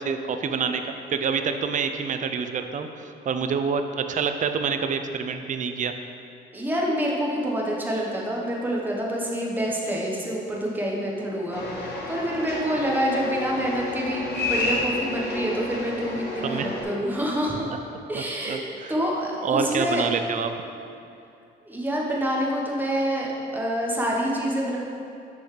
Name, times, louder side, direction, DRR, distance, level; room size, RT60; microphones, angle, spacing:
voice 1, 0.0-5.9 16.4-16.7 18.1-19.0 19.4-20.5, right 6 dB, 40° right, 7 dB, 0.4 m, -27 dB
voice 2, 6.5-17.7 18.1-18.6 18.9-20.0 21.6-23.3 23.5-24.8, equal, 10° right, -3 dB, 1.0 m, -27 dB
sound 1, 11.5-16.8, left 1 dB, 55° left, 1.4 m, -30 dB
6.5 x 5.5 x 3.2 m, 2.5 s
cardioid pair, 90°, 20 cm